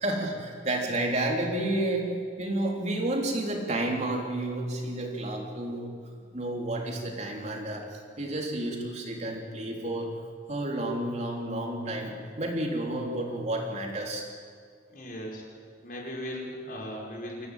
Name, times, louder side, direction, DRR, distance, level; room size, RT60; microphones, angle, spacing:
voice 1, 0.0-2.1 2.4-5.9 6.3-10.1 10.5-14.3, right 1 dB, 40° right, 0 dB, 3.5 m, -31 dB
voice 2, 14.9-15.4 15.8-17.5, equal, 50° left, -1 dB, 5.4 m, -37 dB
25.0 x 16.5 x 9.1 m, 2.1 s
head